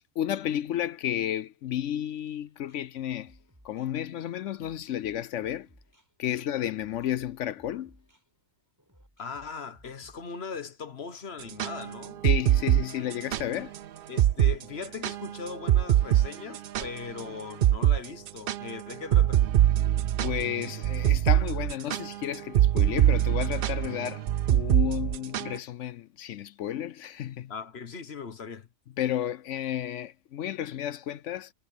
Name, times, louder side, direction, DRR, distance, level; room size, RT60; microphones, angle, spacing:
voice 1, 0.2-3.4 3.6-5.7 6.2-8.0 12.2-13.7 20.2-27.5 29.0-31.5, left 11 dB, 65° left, 0.8 m, -32 dB
School's Out, 2.4-10.6, equal, 10° right, 7.8 m, -60 dB
voice 2, 9.2-12.2 14.1-19.5 27.5-28.7, left 5 dB, 45° left, 1.4 m, -39 dB
sound 1, 11.4-13.4 13.7-13.8 14.2-14.6 14.8-17.2 17.6-18.0 18.3-25.6, right 12 dB, 75° right, 0.5 m, -23 dB
omnidirectional pair, 1.5 m